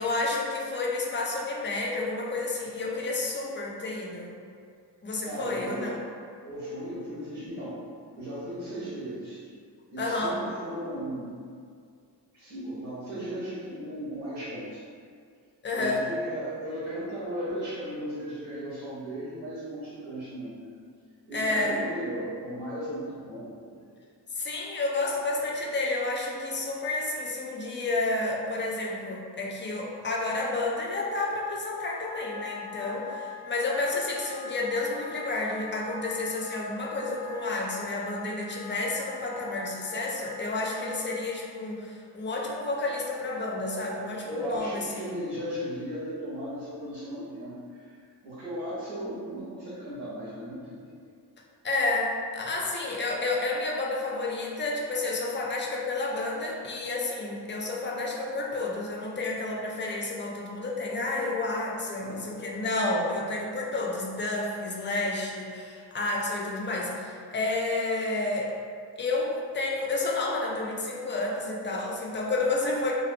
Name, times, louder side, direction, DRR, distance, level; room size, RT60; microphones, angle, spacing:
voice 1, 0.0-4.3 5.0-5.9 10.0-10.4 15.6-16.0 21.3-21.8 24.3-45.2 51.6-52.1 52.3-68.5 69.0-72.9, left 2 dB, 30° left, -1 dB, 0.3 m, -30 dB
voice 2, 5.2-6.1 6.4-7.8 8.1-9.4 9.9-11.4 12.3-14.8 15.7-20.7 21.3-23.8 44.2-51.0 62.0-62.2, equal, 80° right, -11 dB, 0.8 m, -36 dB
Wind instrument woodwind instrument, 31.3-41.2, left 5 dB, 85° left, 0.6 m, -43 dB
2.6 x 2.1 x 2.5 m, 2.2 s
cardioid pair, 80°, 44 cm